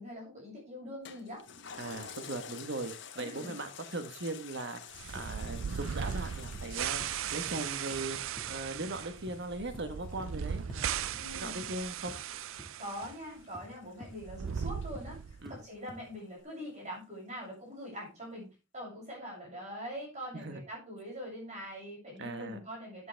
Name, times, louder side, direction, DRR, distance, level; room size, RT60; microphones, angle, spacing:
voice 1, 0.0-1.4 3.1-3.5 11.1-11.6 12.8-15.2 15.5-23.1, equal, 35° right, -4 dB, 7.4 m, -43 dB
Toilet flush, 1.0-15.9 16.3-16.4, left 7 dB, 60° left, 1.5 m, -51 dB
voice 2, 1.8-4.8 5.1-7.0 7.3-12.1 15.4-15.6 20.4-20.6 22.2-22.6, right 2 dB, 60° right, 8 dB, 1.4 m, -39 dB
sound 1, 4.9-13.1 13.4-13.5 14.1-15.5, right 8 dB, 75° right, 0.4 m, -38 dB
sound 2, 5.2-5.3 5.6-5.8 6.1-6.2 6.5-6.7 7.0-7.1 7.5-8.0 8.4-8.5 8.8-9.0 9.3-9.4 9.7-9.9 10.2-10.4 10.7-10.8 11.1-11.8 12.1-12.2 12.6-12.7 13.0-13.2 13.5-13.7 14.0-14.2 14.5-14.6 15.0-15.1 15.5-15.6 15.9-16.1 16.4-16.5, equal, ahead, 1.8 m, -49 dB
12.5 x 9.8 x 3.5 m, 0.29 s
head